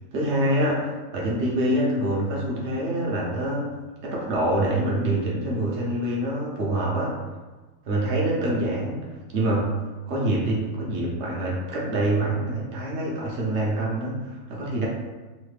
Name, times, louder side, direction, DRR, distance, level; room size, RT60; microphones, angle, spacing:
voice 1, 0.1-3.6 4.0-7.1 7.9-9.0 9.3-9.7 10.1-14.9, right 1 dB, 60° right, -3 dB, 0.9 m, -25 dB
3.2 x 2.0 x 3.2 m, 1.2 s
omnidirectional pair, 1.5 m